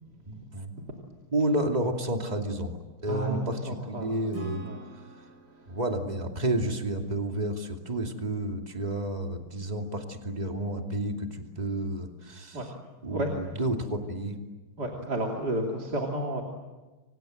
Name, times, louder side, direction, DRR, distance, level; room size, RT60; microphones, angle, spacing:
voice 1, 0.3-0.7 1.3-2.8 3.0-4.6 5.7-12.6 13.0-14.4, right 1 dB, 20° right, 3 dB, 2.7 m, -30 dB
voice 2, 3.0-4.4 4.7-4.8 12.5-12.7 13.1-13.3 14.8-16.4, right 1 dB, 50° right, 0 dB, 3.6 m, -32 dB
Acoustic guitar / Strum, 4.3-7.9, right 6 dB, 80° right, 4.7 m, -47 dB
30.0 x 25.5 x 7.8 m, 1.2 s
omnidirectional pair, 2.3 m